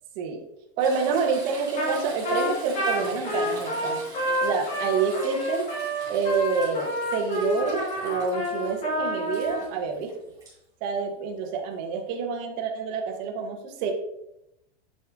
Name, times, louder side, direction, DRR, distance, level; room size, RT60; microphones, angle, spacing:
Toilet flush / Trickle dribble, 0.8-10.5 12.3-12.4, right 2 dB, 10° right, 2.4 m, -43 dB
voice 1, 0.8-4.0 4.4-5.7 6.1-10.1 10.8-13.9, right 5 dB, 45° right, 3 dB, 1.1 m, -27 dB
Trumpet, 1.8-2.0 2.2-9.6, equal, 20° left, 1.7 m, -29 dB
7.9 x 4.8 x 2.5 m, 0.80 s
supercardioid pair, 155°, 32 cm